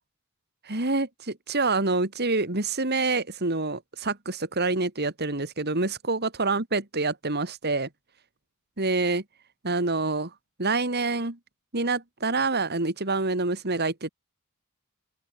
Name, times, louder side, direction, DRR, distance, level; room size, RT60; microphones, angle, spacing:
voice 1, 0.7-7.9 8.8-9.2 9.6-10.3 10.6-11.4 11.7-14.1, right 3 dB, 50° right, 3.0 m, -27 dB
open air
head